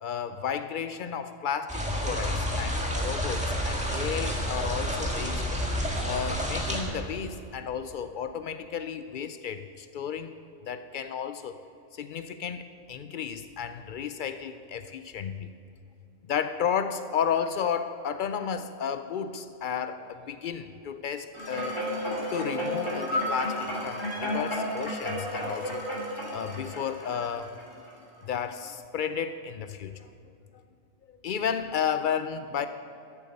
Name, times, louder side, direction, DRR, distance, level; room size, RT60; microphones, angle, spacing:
voice 1, 0.0-5.6 6.0-10.3 10.6-11.6 11.9-15.5 16.3-21.8 22.3-25.9 26.3-27.5 28.2-30.1 31.2-32.7, left 7 dB, 85° left, 10 dB, 0.4 m, -33 dB
sound 1, 1.7-6.8, equal, 5° right, 1.8 m, -29 dB
sound 2, 21.3-27.9 28.4-28.5, equal, 20° left, 2.5 m, -32 dB
13.5 x 8.2 x 6.7 m, 2.6 s
omnidirectional pair, 1.4 m